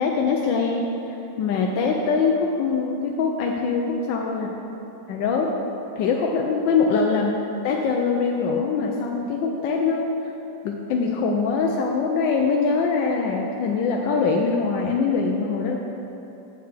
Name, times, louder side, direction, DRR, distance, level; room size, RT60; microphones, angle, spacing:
voice 1, 0.0-4.5 5.1-5.5 6.0-7.3 7.6-10.1 10.6-15.8, left 4 dB, 75° left, 0 dB, 1.3 m, -23 dB
8.0 x 7.8 x 3.3 m, 3.0 s
omnidirectional pair, 2.1 m